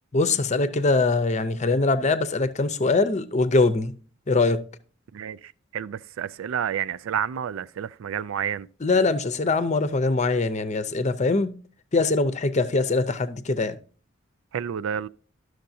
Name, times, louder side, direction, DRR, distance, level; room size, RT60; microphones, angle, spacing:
voice 1, 0.1-3.9 4.3-4.6 8.8-11.5 11.9-13.8, left 3 dB, 35° left, 0.6 m, -22 dB
voice 2, 5.7-8.7 14.5-15.1, right 8 dB, 85° right, 0.3 m, -29 dB
11.5 x 6.5 x 2.7 m
head